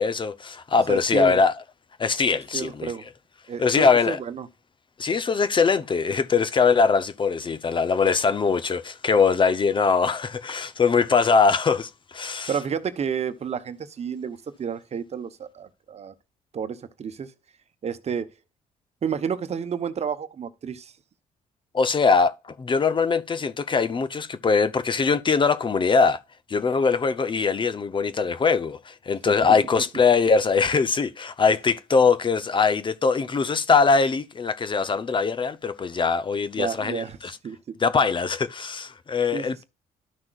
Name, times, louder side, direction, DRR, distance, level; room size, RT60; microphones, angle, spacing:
voice 1, 0.0-1.5 2.0-2.9 3.6-4.2 5.0-12.5 21.7-26.2 26.5-37.3 37.8-39.6, left 5 dB, 35° left, 0.7 m, -22 dB
voice 2, 0.9-1.4 2.5-3.1 3.5-4.5 12.5-16.1 16.5-17.3 17.8-18.3 19.0-20.9 29.2-29.3 36.6-37.6 39.3-39.6, right 7 dB, 45° right, 1.0 m, -31 dB
12.5 x 5.9 x 2.4 m
supercardioid pair, 75°, 15 cm